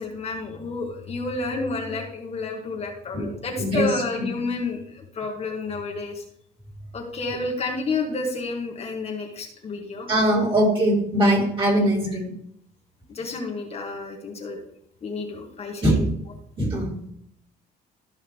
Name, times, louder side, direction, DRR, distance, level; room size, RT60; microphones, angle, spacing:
voice 1, 0.0-6.2 6.9-10.1 13.1-14.6 15.0-16.1, left 3 dB, 40° left, 0 dB, 1.7 m, -30 dB
voice 2, 1.5-2.0 3.1-3.3 3.5-4.3 7.3-7.4 10.1-12.3 15.8-16.1 16.6-16.9, right 1 dB, 30° right, -3 dB, 4.1 m, -22 dB
13.5 x 5.5 x 3.5 m, 0.72 s
cardioid pair, 110°, 17 cm